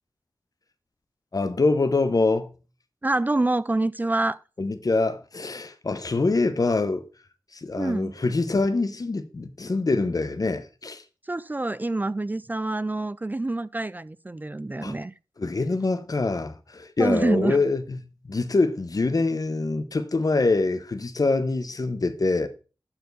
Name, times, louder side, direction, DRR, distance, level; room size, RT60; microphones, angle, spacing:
voice 1, 1.3-2.5 4.6-7.1 7.5-11.0 14.8-14.9 15.4-22.5, left 3 dB, 50° left, 1.0 m, -25 dB
voice 2, 3.0-4.4 7.8-8.1 11.3-15.1 17.0-17.6, right 2 dB, 20° right, 0.4 m, -26 dB
12.0 x 4.4 x 4.1 m
wide cardioid pair, 65°, 8 cm